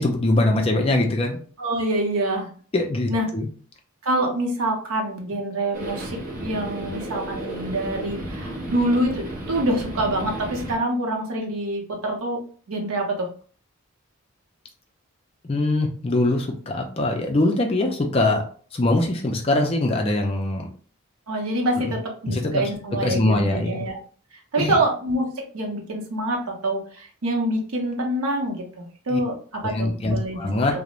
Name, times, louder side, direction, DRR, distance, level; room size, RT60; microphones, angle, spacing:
voice 1, 0.0-1.4 2.7-3.5 15.4-18.4 18.7-20.7 21.8-21.9 22.3-22.7 23.0-23.8 24.6-24.8 29.1-29.2 29.6-30.7, left 2 dB, 25° left, 2 dB, 0.3 m, -22 dB
voice 2, 1.6-2.5 3.1-3.3 4.0-12.4 12.7-13.3 21.3-24.0 24.5-30.4 30.7-30.8, right 1 dB, 75° right, 1 dB, 0.7 m, -26 dB
sound 1, 5.7-10.8, right 1 dB, 40° right, 0.6 m, -33 dB
2.4 x 2.0 x 2.9 m, 0.44 s
head